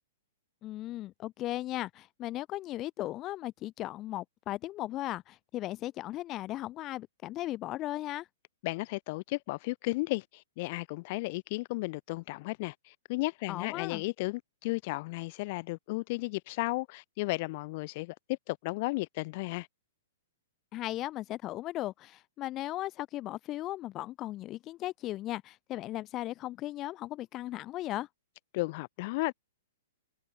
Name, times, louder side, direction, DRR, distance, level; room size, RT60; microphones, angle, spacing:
voice 1, 0.6-8.3 13.5-14.0 20.7-28.1, left 15 dB, 30° left, 2.1 m, -37 dB
voice 2, 8.6-19.7 28.5-29.3, left 23 dB, 45° left, 2.2 m, -34 dB
hypercardioid pair, 140°, 0 cm